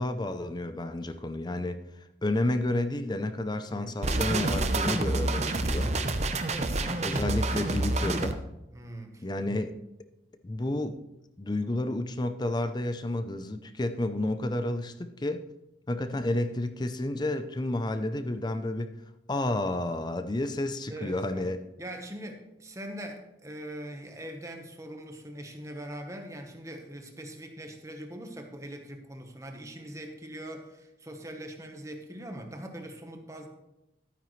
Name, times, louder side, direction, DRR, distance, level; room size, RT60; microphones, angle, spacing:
voice 1, 0.0-1.8 2.2-5.9 7.0-8.4 9.2-9.7 10.4-11.0 11.4-15.4 15.9-18.9 19.3-21.6, left 1 dB, 20° left, 10 dB, 0.5 m, -31 dB
voice 2, 3.6-4.0 6.5-7.4 8.7-9.3 20.9-21.5 21.8-33.5, right 1 dB, 15° right, 4 dB, 1.1 m, -42 dB
sound 1, 4.0-8.3, right 2 dB, 35° right, 0.7 m, -28 dB
12.0 x 9.1 x 3.2 m, 0.92 s
head